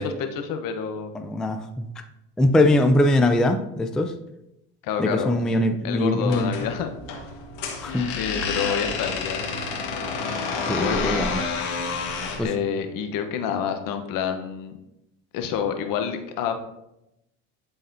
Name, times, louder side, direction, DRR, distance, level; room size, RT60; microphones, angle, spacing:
voice 1, 0.0-1.1 4.8-5.4 5.8-6.9 8.1-9.5 10.8-11.3 12.4-14.7 15.3-16.5, left 7 dB, 60° left, 7 dB, 1.0 m, -28 dB
voice 2, 1.1-1.8 2.4-4.1 5.0-6.5 7.8-8.1 10.7-11.4 12.4-12.5, left 1 dB, ahead, 6 dB, 0.3 m, -21 dB
sound 1, 6.2-12.5, left 4 dB, 85° left, 1.5 m, -29 dB
11.5 x 4.0 x 2.7 m, 0.86 s
supercardioid pair, 95°, 36 cm